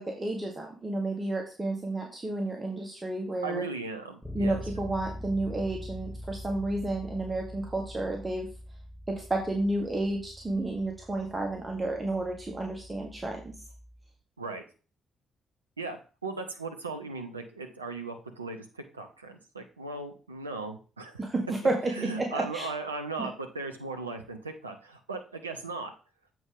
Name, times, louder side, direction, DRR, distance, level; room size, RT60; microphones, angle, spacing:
voice 1, 0.0-3.6 4.3-8.5 9.1-13.6 21.2-22.7 23.2-23.3, right 2 dB, 20° right, 1 dB, 1.5 m, -31 dB
voice 2, 3.4-4.6 14.4-14.6 15.8-21.2 21.9-25.9, right 3 dB, 85° right, 5 dB, 0.6 m, -37 dB
Bass guitar, 4.2-14.0, left 1 dB, 5° right, 2.1 m, -44 dB
7.9 x 4.7 x 3.9 m, 0.36 s
figure-of-eight pair, 40°, 0 cm